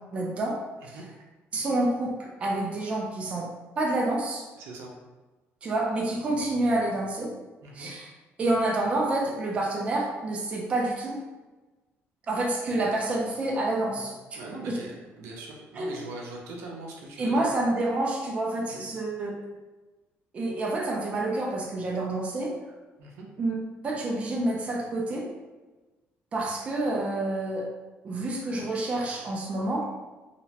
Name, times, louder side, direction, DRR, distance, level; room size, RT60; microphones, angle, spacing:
voice 1, 0.1-0.6 1.5-3.5 3.8-4.4 5.6-7.3 7.7-8.1 8.4-11.2 12.3-14.1 14.7-14.8 15.7-16.0 17.2-19.3 20.3-22.5 23.4-23.6 23.8-25.3 26.3-27.7 28.0-29.9, right 2 dB, 25° right, -2 dB, 0.4 m, -28 dB
voice 2, 4.6-4.9 7.6-7.9 13.9-14.0 14.3-17.5 18.7-18.8 23.0-23.3, right 2 dB, 85° right, -1 dB, 0.6 m, -41 dB
2.8 x 2.1 x 2.8 m, 1.2 s
cardioid pair, 165°, 5 cm